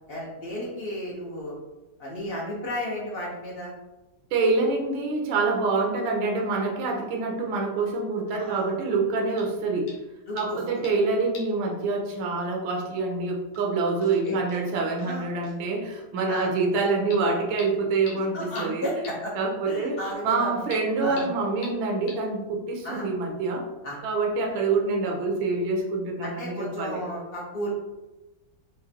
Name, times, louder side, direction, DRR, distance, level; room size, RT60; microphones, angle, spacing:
voice 1, 0.1-1.6 2.0-3.7 8.3-8.7 10.3-10.6 14.2-14.4 15.0-15.3 16.3-16.5 18.2-19.3 19.7-20.6 21.0-21.3 22.8-23.1 23.8-24.0 26.2-27.7, equal, 65° left, -4 dB, 0.6 m, -33 dB
voice 2, 4.3-9.9 10.3-18.9 19.3-23.7 24.0-27.0, right 3 dB, 90° right, 1 dB, 1.5 m, -26 dB
sound 1, 9.4-9.6 9.9-10.1 10.4-11.1 11.3-11.6 11.9-12.0 13.1-13.2 13.5-13.6 14.0-14.1 14.5-14.6 15.0-15.1 15.4-15.6 17.1-17.2 17.6-17.7 18.1-18.2 18.6-18.7 19.0-19.1 20.7-20.8 21.2-21.3 21.6-21.7 22.1-22.2, left 3 dB, 80° left, 1.5 m, -43 dB
5.1 x 2.4 x 2.7 m, 1.1 s
omnidirectional pair, 2.1 m